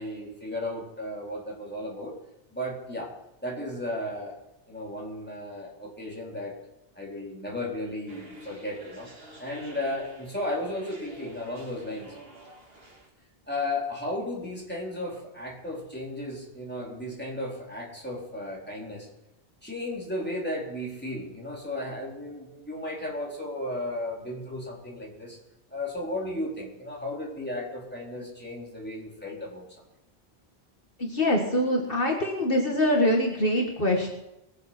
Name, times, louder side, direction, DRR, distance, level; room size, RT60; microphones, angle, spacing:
voice 1, 0.0-2.2 2.5-3.1 3.4-4.3 4.7-6.5 7.0-9.1 9.4-12.1 13.5-19.1 19.6-25.4 25.7-29.7, left 1 dB, 10° left, -3 dB, 4.3 m, -34 dB
sound 1, 8.1-13.1, equal, 65° right, 3.1 m, -48 dB
voice 2, 31.0-34.1, left 1 dB, 60° left, 2 dB, 2.0 m, -24 dB
21.5 x 7.9 x 6.1 m, 0.90 s
omnidirectional pair, 1.1 m